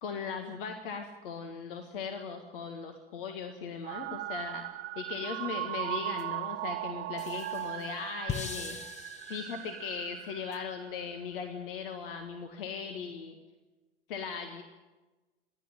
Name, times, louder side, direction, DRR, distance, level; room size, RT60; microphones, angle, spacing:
voice 1, 0.0-4.6 5.0-8.8 9.3-13.4 14.1-14.6, left 6 dB, 60° left, 6 dB, 1.9 m, -38 dB
sound 1, 3.8-11.1, right 15 dB, 35° right, 1.2 m, -38 dB
sound 2, 6.2-6.3 7.2-9.9 10.5-10.6, left 6 dB, 20° left, 1.3 m, -41 dB
27.5 x 11.0 x 8.9 m, 1.2 s
figure-of-eight pair, 85°, 31 cm